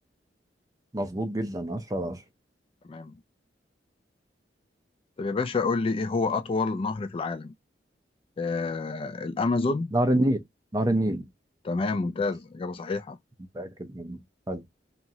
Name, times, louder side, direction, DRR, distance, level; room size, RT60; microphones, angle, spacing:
voice 1, 0.9-2.2 9.9-10.4 10.7-11.3 13.5-14.2 14.5-14.6, right 1 dB, 20° right, 0.6 m, -27 dB
voice 2, 5.2-7.5 8.4-9.9 11.6-13.2, left 3 dB, 30° left, 0.3 m, -28 dB
2.9 x 2.4 x 2.6 m
head